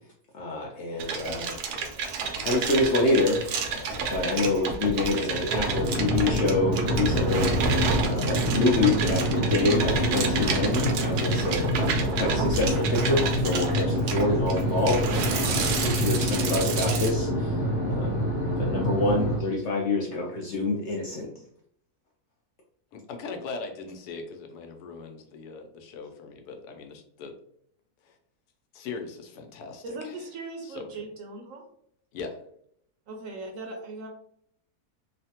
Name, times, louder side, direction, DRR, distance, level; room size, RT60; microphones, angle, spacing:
voice 1, 0.3-1.6 2.4-3.4 4.1-7.5 8.0-11.7 12.2-15.3 15.8-17.5 17.9-18.1 18.6-21.3, left 2 dB, 70° left, -1 dB, 0.6 m, -26 dB
sound 1, 1.0-17.1, right 4 dB, 90° right, 1.1 m, -30 dB
sound 2, 5.7-19.4, equal, 40° left, 1.0 m, -27 dB
voice 2, 22.9-27.3 28.0-28.1 28.7-30.2 30.6-31.0 32.1-32.4, left 4 dB, 85° left, 5 dB, 1.1 m, -40 dB
voice 3, 29.8-31.6 33.1-34.1, right 2 dB, 70° right, 3 dB, 0.8 m, -38 dB
3.1 x 2.1 x 2.8 m, 0.68 s
omnidirectional pair, 1.6 m